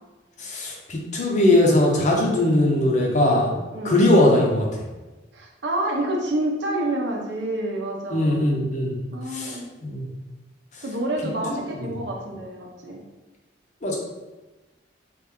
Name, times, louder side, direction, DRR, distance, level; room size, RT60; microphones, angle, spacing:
voice 1, 0.4-3.5 3.8-4.7 8.1-9.0 9.3-10.1 11.8-11.9 13.8-14.0, left 1 dB, 40° left, -1 dB, 0.6 m, -20 dB
voice 2, 3.7-4.1 5.3-8.5 9.1-9.6 10.8-13.0, right 1 dB, 65° right, 1 dB, 0.6 m, -28 dB
3.1 x 2.5 x 3.5 m, 1.1 s
head